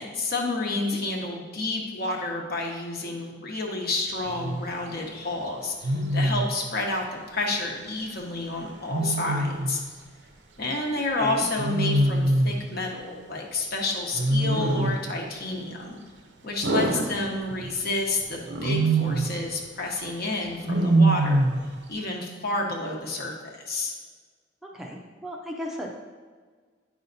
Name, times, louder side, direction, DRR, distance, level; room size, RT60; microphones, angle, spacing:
voice 1, 0.0-9.8 10.6-16.0 16.4-21.4 21.9-23.9, left 2 dB, 55° left, 0 dB, 1.1 m, -30 dB
Wild animals, 4.2-4.6 5.8-6.5 8.9-9.8 11.6-12.7 14.1-15.1 16.6-17.7 18.5-19.4 20.7-21.7, right 2 dB, 70° right, 0.7 m, -24 dB
voice 2, 11.0-11.5 16.9-17.0 24.6-26.0, equal, ahead, -1 dB, 0.5 m, -35 dB
9.5 x 5.5 x 2.7 m, 1.5 s
head